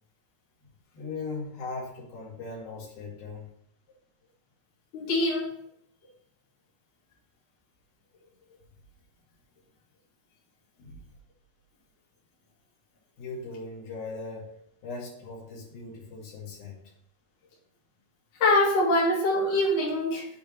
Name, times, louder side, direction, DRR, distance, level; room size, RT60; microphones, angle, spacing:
voice 1, 0.9-3.5 10.8-11.0 13.2-14.5 14.8-16.8, left 3 dB, 85° left, -5 dB, 4.2 m, -39 dB
voice 2, 4.9-5.5 18.4-20.2, left 1 dB, 65° left, -6 dB, 3.6 m, -24 dB
8.3 x 3.6 x 6.1 m, 0.70 s
omnidirectional pair, 4.1 m